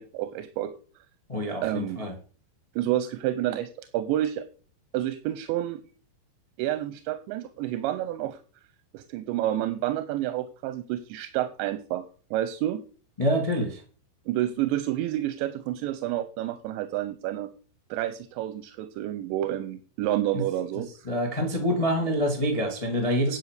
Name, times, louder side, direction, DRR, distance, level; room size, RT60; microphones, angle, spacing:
voice 1, 0.1-0.7 1.6-2.0 2.8-4.4 4.9-5.8 6.6-8.4 8.9-12.8 14.3-17.5 17.9-20.9, right 13 dB, 90° right, 11 dB, 3.1 m, -29 dB
voice 2, 1.3-2.1 13.2-13.8 20.3-20.4 21.0-23.4, equal, 35° left, 2 dB, 0.5 m, -26 dB
10.0 x 6.3 x 6.6 m, 0.39 s
omnidirectional pair, 5.1 m